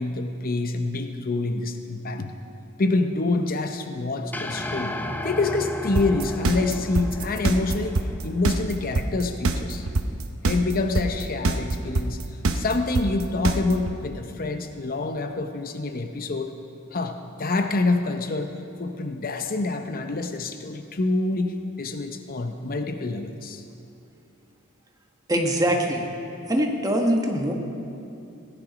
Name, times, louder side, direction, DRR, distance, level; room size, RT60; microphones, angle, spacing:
voice 1, 0.0-2.3 2.8-5.0 5.2-9.9 10.4-12.2 12.5-16.5 16.9-23.6, left 3 dB, 45° left, 6 dB, 0.7 m, -27 dB
sound 1, 4.3-8.7, left 1 dB, 10° left, 0.6 m, -34 dB
sound 2, 6.0-13.9, right 3 dB, 90° right, 0.8 m, -23 dB
voice 2, 25.3-26.1 26.5-27.5, equal, 20° right, 2 dB, 1.2 m, -23 dB
17.0 x 11.0 x 5.1 m, 2.6 s
head